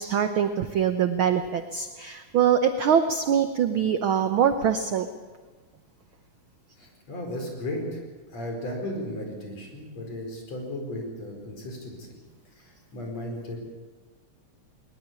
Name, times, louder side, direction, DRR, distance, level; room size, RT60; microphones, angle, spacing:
voice 1, 0.0-5.1, right 8 dB, 75° right, 8 dB, 1.1 m, -23 dB
voice 2, 6.8-8.0 8.3-12.1 12.5-13.6, left 1 dB, 55° left, 2 dB, 5.7 m, -35 dB
20.5 x 20.5 x 8.5 m, 1.3 s
omnidirectional pair, 3.5 m